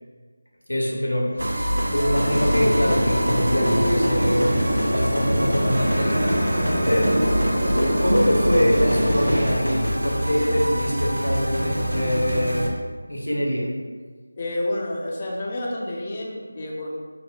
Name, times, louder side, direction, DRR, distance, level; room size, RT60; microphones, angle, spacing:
voice 1, 0.7-6.4 6.8-12.7 13.1-13.7, equal, 85° left, -2 dB, 0.7 m, -24 dB
sound 1, 1.4-12.7, equal, 85° right, 0.5 m, -25 dB
sound 2, 2.1-9.5, equal, 25° right, 0.9 m, -24 dB
voice 2, 14.4-16.9, left 1 dB, 30° left, -2 dB, 0.4 m, -29 dB
2.8 x 2.1 x 3.2 m, 1.5 s
figure-of-eight pair, 165°, 0 cm